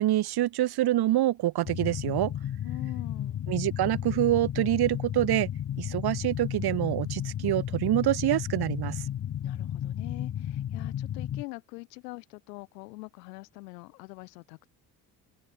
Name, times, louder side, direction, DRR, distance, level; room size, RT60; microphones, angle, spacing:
voice 1, 0.0-2.3 3.5-5.5 5.8-9.0, right 14 dB, 50° right, 1.0 m, -26 dB
sound 1, 1.6-11.4, left 10 dB, 35° left, 0.8 m, -33 dB
voice 2, 2.6-3.4 9.4-14.7, left 25 dB, 85° left, 1.5 m, -43 dB
open air
hypercardioid pair, 60°, 48 cm